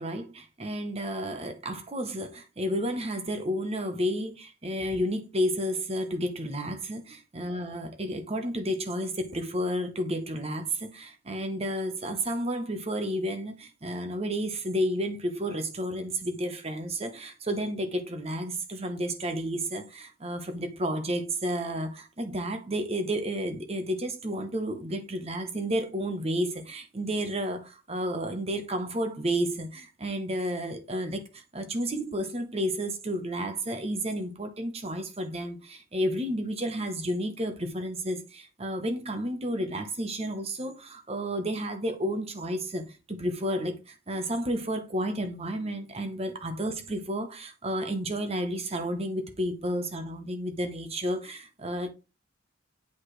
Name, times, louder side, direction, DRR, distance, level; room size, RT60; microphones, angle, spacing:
voice 1, 0.0-51.9, equal, 30° right, 1.0 m, -31 dB
8.2 x 4.9 x 3.2 m
head